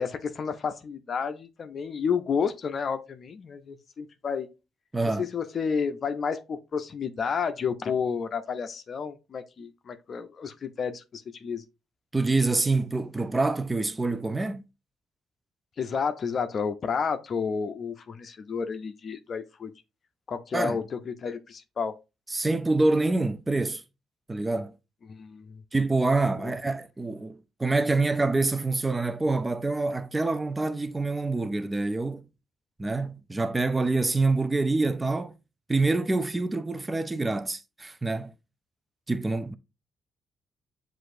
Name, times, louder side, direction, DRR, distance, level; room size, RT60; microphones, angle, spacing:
voice 1, 0.0-4.5 5.2-11.6 15.8-19.7 20.3-21.9 25.1-25.6 26.4-26.5, left 6 dB, 55° left, 0.5 m, -31 dB
voice 2, 4.9-5.2 12.1-14.6 20.5-20.8 22.3-23.8 24.3-24.8 25.7-32.3 32.8-35.3 35.7-38.3 39.1-39.5, right 3 dB, 20° right, 0.5 m, -26 dB
7.5 x 2.5 x 2.6 m
hypercardioid pair, 50°, 0 cm